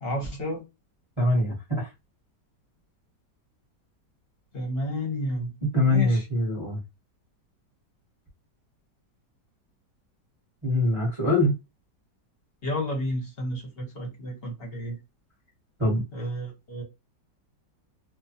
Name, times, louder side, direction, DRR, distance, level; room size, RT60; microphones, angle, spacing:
voice 1, 0.0-0.6 4.5-5.5 5.8-6.2 12.6-15.0 16.1-16.8, left 1 dB, 45° left, 0.9 m, -31 dB
voice 2, 1.2-1.9 5.6-6.8 10.6-11.5 15.8-16.0, left 1 dB, 20° right, 0.8 m, -23 dB
3.0 x 2.1 x 2.6 m
omnidirectional pair, 1.9 m